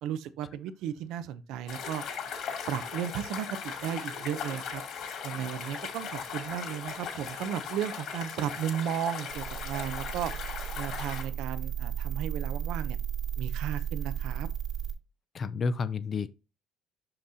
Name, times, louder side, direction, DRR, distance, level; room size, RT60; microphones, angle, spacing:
voice 1, 0.0-2.0 2.7-4.8 5.2-10.3 10.8-13.0 13.4-14.5, right 10 dB, 80° right, 0.7 m, -34 dB
sound 1, 1.7-11.2, left 7 dB, 65° left, 2.7 m, -38 dB
sound 2, 9.3-14.9, right 9 dB, 60° right, 1.8 m, -34 dB
voice 2, 15.3-16.3, left 4 dB, 35° left, 0.4 m, -30 dB
6.5 x 5.8 x 2.8 m
cardioid pair, 135°, 0 cm